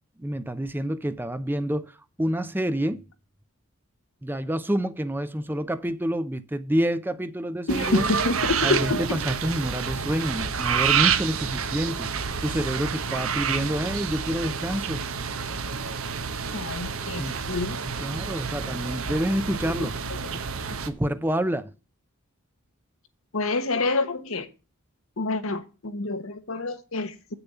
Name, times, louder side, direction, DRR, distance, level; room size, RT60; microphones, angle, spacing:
voice 1, 0.2-3.0 4.2-8.0 8.6-12.1 12.4-15.0 17.2-17.4 17.8-20.0 20.8-21.7, right 1 dB, 10° right, 0.5 m, -28 dB
voice 2, 7.7-9.0 16.5-17.8 19.8-19.9 20.7-20.8 23.3-24.5 25.2-27.3, left 2 dB, 70° left, 1.2 m, -27 dB
sound 1, 7.7-20.9, right 6 dB, 75° right, 1.0 m, -28 dB
8.5 x 6.9 x 5.4 m
head